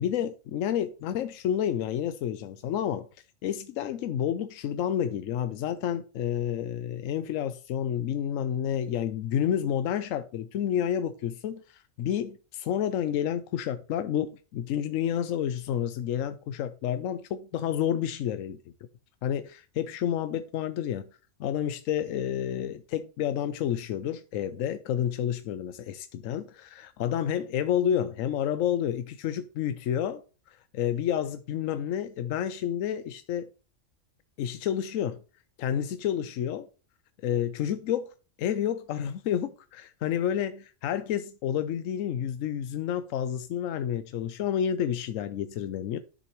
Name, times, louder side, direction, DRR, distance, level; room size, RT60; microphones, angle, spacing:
voice 1, 0.0-3.1 3.4-18.6 19.2-21.1 21.4-30.2 30.7-33.5 34.4-35.2 35.6-36.7 37.2-38.1 38.4-46.0, left 9 dB, 80° left, 1.0 m, -30 dB
11.0 x 6.5 x 3.0 m
omnidirectional pair, 1.3 m